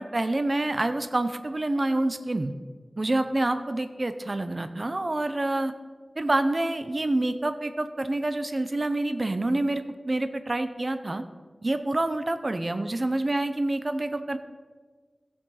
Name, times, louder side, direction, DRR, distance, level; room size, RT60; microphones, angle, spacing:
voice 1, 0.0-2.5 3.0-5.7 6.2-11.2 11.6-14.4, right 2 dB, 45° right, 9 dB, 0.7 m, -27 dB
15.5 x 6.1 x 4.1 m, 1.5 s
wide cardioid pair, 70°, 0 cm